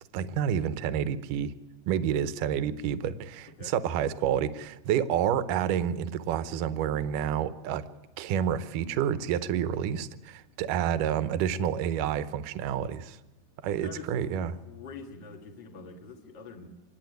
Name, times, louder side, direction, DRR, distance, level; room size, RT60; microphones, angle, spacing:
voice 1, 0.1-1.5 1.9-7.8 8.2-13.2 13.6-14.6, right 9 dB, 70° right, 13 dB, 2.1 m, -29 dB
voice 2, 13.7-16.7, left 4 dB, 40° left, 1 dB, 1.8 m, -45 dB
25.5 x 20.5 x 9.3 m, 1.0 s
omnidirectional pair, 4.9 m